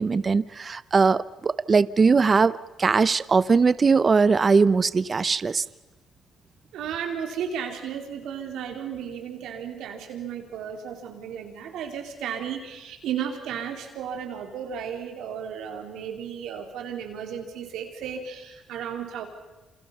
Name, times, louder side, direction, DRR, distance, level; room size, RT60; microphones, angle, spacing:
voice 1, 0.0-5.6, right 4 dB, 35° right, 17 dB, 0.7 m, -20 dB
voice 2, 6.7-19.2, right 8 dB, 85° right, 3 dB, 4.0 m, -34 dB
28.5 x 27.5 x 5.6 m, 1.1 s
cardioid pair, 90°, 0 cm